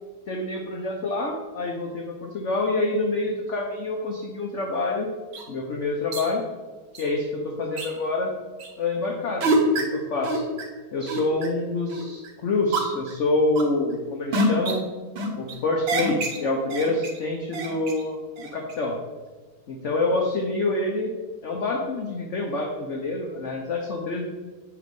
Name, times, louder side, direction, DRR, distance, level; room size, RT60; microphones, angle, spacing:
voice 1, 0.3-5.1 5.5-6.4 7.0-8.3 8.8-10.4 10.9-14.9 15.4-19.0 19.7-21.1 21.4-24.3, left 2 dB, 65° left, 1 dB, 0.7 m, -27 dB
sound 1, 5.3-5.4 6.1-6.3 6.9-7.1 7.8-7.9 8.6-8.7 9.4-9.8 10.2-10.6 11.1-11.5 11.9-12.3 12.7-13.1 13.6-13.9 14.3-14.7 15.2-15.5 15.9-16.4 16.7-17.2 17.5-18.0 18.4-18.7, right 1 dB, 75° right, 1.9 m, -26 dB
8.3 x 3.9 x 5.3 m, 1.4 s
omnidirectional pair, 2.2 m